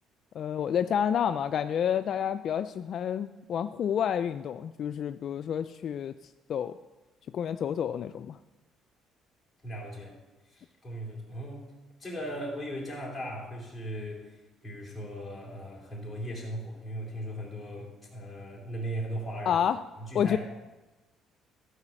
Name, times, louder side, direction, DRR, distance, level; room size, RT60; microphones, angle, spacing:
voice 1, 0.3-6.1 6.5-6.7 7.3-8.4 19.5-19.8 20.1-20.4, left 8 dB, 55° left, 11 dB, 0.3 m, -29 dB
voice 2, 9.6-10.2 10.4-11.7 12.0-19.6 20.0-20.4, right 1 dB, 10° left, -3 dB, 3.6 m, -38 dB
13.0 x 4.9 x 7.5 m, 1.1 s
cardioid pair, 120°, 0 cm